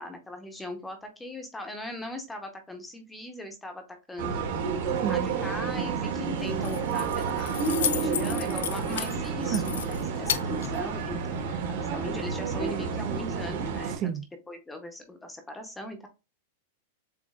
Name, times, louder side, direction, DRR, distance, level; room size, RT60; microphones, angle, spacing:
voice 1, 0.0-4.5 5.1-11.6 11.9-14.1 14.5-16.1, left 1 dB, 5° left, 0.7 m, -39 dB
sound 1, 4.2-14.0, right 5 dB, 60° right, 1.5 m, -30 dB
voice 2, 5.0-5.3 9.5-9.7 14.0-14.2, right 9 dB, 30° right, 0.3 m, -30 dB
Keys jangling, 6.4-11.4, left 10 dB, 85° left, 0.5 m, -35 dB
7.1 x 2.5 x 2.3 m
supercardioid pair, 165°, 0 cm